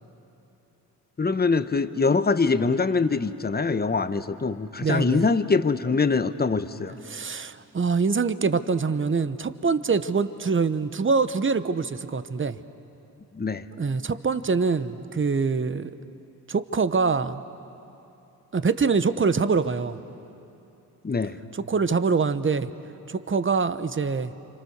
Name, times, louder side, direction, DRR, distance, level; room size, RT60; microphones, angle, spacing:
voice 1, 1.2-6.9 13.3-13.6 21.0-21.4, left 4 dB, 25° left, 11 dB, 1.0 m, -23 dB
voice 2, 4.8-5.3 7.1-12.6 13.8-15.9 16.5-17.4 18.5-20.0 21.5-22.7 23.1-24.3, right 4 dB, 30° right, 12 dB, 1.0 m, -24 dB
29.5 x 26.0 x 6.7 m, 2.8 s
cardioid pair, 60°, 39 cm